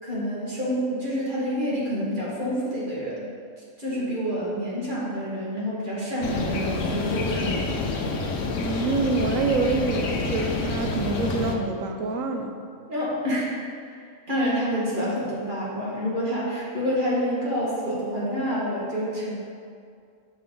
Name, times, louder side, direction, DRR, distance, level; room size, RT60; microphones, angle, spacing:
voice 1, 0.0-3.3 3.8-7.7 12.9-19.4, equal, 40° right, -7 dB, 1.7 m, -28 dB
sound 1, 6.2-11.5, left 3 dB, 70° left, 1.1 m, -28 dB
voice 2, 8.6-12.5, right 3 dB, 85° right, 4 dB, 1.1 m, -26 dB
6.9 x 5.3 x 3.7 m, 2.3 s
omnidirectional pair, 1.4 m